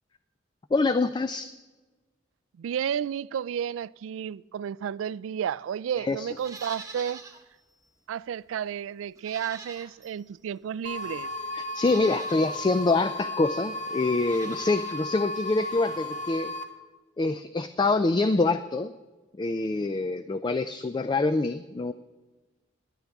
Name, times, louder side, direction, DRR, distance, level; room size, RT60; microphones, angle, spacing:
voice 1, 0.7-1.5 6.0-6.3 11.5-16.5 17.2-18.9 19.4-21.9, left 3 dB, 25° left, 0.3 m, -25 dB
voice 2, 2.6-7.2 8.1-11.3, right 8 dB, 85° right, 0.3 m, -32 dB
Livestock farm animals working animals, 6.3-7.4 7.8-7.9 9.1-10.2 11.0-11.1 11.7-12.5 14.1-15.1 15.3-15.4, right 4 dB, 15° right, 1.1 m, -45 dB
sound 1, 10.8-16.6, left 1 dB, 40° left, 1.4 m, -34 dB
19.0 x 11.0 x 3.5 m
head